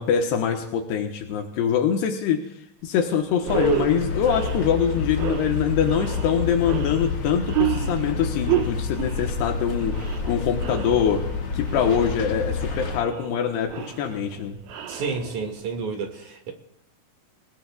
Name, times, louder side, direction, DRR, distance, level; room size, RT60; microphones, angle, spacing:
voice 1, 0.0-2.4 2.8-11.2 11.5-14.6, left 8 dB, 80° left, 3 dB, 3.2 m, -24 dB
sound 1, 2.9-3.0 3.4-15.7, right 10 dB, 70° right, 3.0 m, -31 dB
sound 2, 3.5-13.0, left 4 dB, 50° left, 2.2 m, -29 dB
voice 2, 14.9-16.5, right 4 dB, 50° right, 3 dB, 3.1 m, -30 dB
28.0 x 17.5 x 2.4 m, 0.80 s
omnidirectional pair, 4.8 m